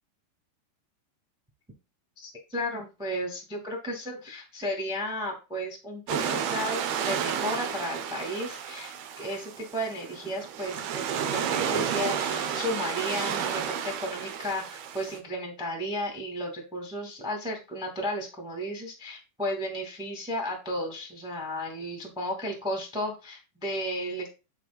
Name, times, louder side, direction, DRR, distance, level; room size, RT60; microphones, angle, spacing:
voice 1, 2.2-24.3, equal, 5° right, 1 dB, 0.7 m, -34 dB
sound 1, 6.1-15.2, right 8 dB, 70° right, 2.7 m, -31 dB
13.5 x 4.9 x 2.4 m, 0.30 s
omnidirectional pair, 5.2 m